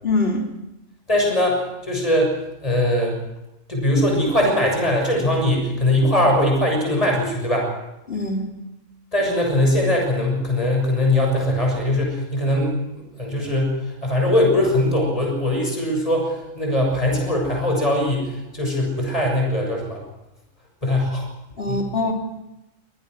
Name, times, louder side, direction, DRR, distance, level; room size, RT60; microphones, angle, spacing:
voice 1, 0.0-0.4 8.1-8.4 21.6-22.1, left 2 dB, 45° left, 1 dB, 3.5 m, -23 dB
voice 2, 1.1-3.2 3.7-7.7 9.1-20.0 20.8-21.3 21.7-21.9, left 1 dB, 25° left, 1 dB, 7.2 m, -21 dB
24.0 x 18.5 x 6.4 m, 0.94 s
omnidirectional pair, 1.4 m